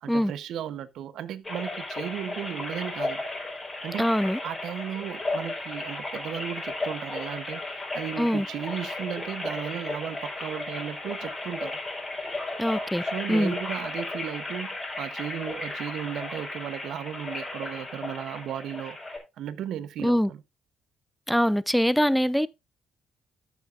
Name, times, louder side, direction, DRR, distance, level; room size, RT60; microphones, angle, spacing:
voice 1, 0.0-3.2 3.8-4.1 4.4-11.8 13.0-19.0 19.4-20.4, right 10 dB, 80° right, 0.8 m, -35 dB
sound 1, 1.4-19.2, left 2 dB, 20° left, 4.1 m, -34 dB
voice 2, 4.0-4.4 8.2-8.5 12.6-13.0 13.3-13.5 20.0-20.3 21.3-22.5, equal, ahead, 0.4 m, -23 dB
13.5 x 6.8 x 2.5 m
cardioid pair, 90°, 0 cm